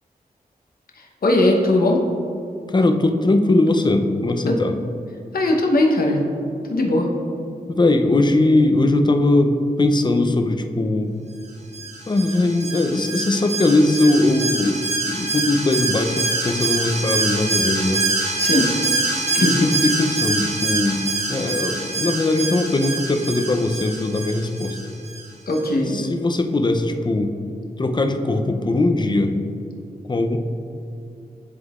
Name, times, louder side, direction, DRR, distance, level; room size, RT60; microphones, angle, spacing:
voice 1, 1.0-2.0 4.5-4.6 5.3-6.3 6.7-7.1 18.4-18.7 19.3-19.5 25.5-26.0, left 1 dB, 70° left, 0 dB, 0.9 m, -19 dB
voice 2, 2.7-4.8 7.7-11.1 12.1-18.1 19.4-24.8 25.9-27.4 27.8-29.3 30.1-30.4, left 2 dB, 30° left, 5 dB, 0.5 m, -20 dB
Alarm, 11.7-25.2 25.5-25.6, right 3 dB, 45° right, 1.1 m, -25 dB
11.0 x 3.8 x 2.4 m, 2.6 s
cardioid pair, 60°, 16 cm